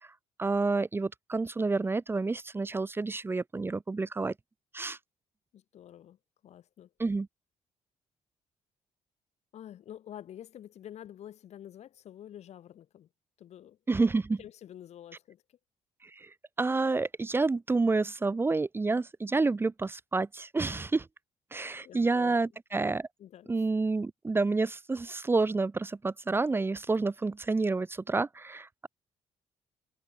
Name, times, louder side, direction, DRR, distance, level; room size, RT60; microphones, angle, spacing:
voice 1, 0.4-4.3 4.7-5.0 7.0-7.3 13.9-14.4 16.0-16.3 16.6-21.1 21.5-23.1 23.5-28.9, right 3 dB, 20° right, 1.0 m, -29 dB
voice 2, 5.5-6.2 6.4-6.9 9.5-13.1 13.4-13.8 14.4-15.6 21.8-22.4 23.2-23.5, left 11 dB, 60° left, 2.1 m, -48 dB
cardioid pair, 135°, 12 cm